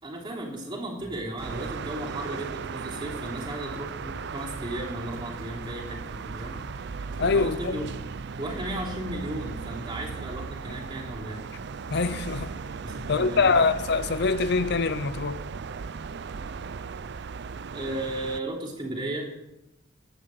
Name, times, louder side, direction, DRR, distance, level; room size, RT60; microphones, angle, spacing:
voice 1, 0.0-6.6 7.2-7.9 8.4-11.5 12.8-13.6 17.7-19.3, right 1 dB, 25° right, 3.1 m, -35 dB
sound 1, 1.0-8.0, right 1 dB, 90° right, 2.8 m, -48 dB
sound 2, 1.4-18.4, right 5 dB, 55° right, 0.5 m, -37 dB
voice 2, 7.2-7.8 11.9-12.5 13.1-15.4, left 4 dB, 55° left, 0.6 m, -24 dB
11.5 x 9.6 x 7.7 m
head